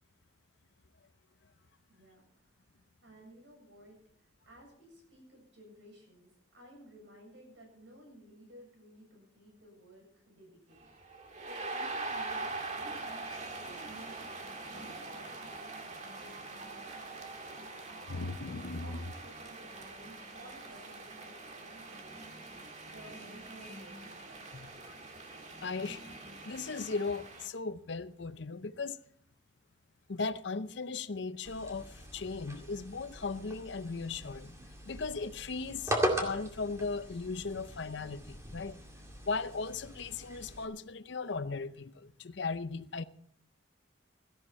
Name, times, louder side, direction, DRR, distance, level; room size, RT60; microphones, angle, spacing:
voice 1, 1.9-14.3 14.6-18.2 18.8-24.2, equal, 70° right, 7.4 m, -56 dB
sound 1, 10.8-27.5, right 3 dB, 35° right, 1.6 m, -43 dB
voice 2, 18.1-19.0 24.5-25.0 25.6-26.0 26.4-29.0 30.1-34.6 34.9-38.8 39.2-43.0, left 4 dB, 60° left, 0.6 m, -37 dB
sound 2, 31.4-40.6, equal, 15° right, 2.2 m, -39 dB
17.0 x 14.0 x 4.3 m
head